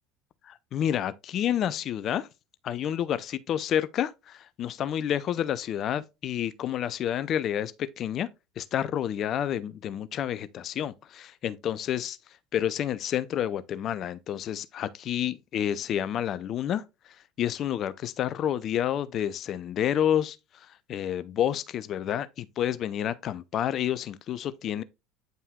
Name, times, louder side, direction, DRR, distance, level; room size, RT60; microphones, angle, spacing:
voice 1, 0.4-2.3 2.6-8.3 8.6-12.2 12.5-24.8, left 10 dB, 40° left, 0.5 m, -29 dB
8.9 x 5.4 x 2.3 m
figure-of-eight pair, 70°, 0 cm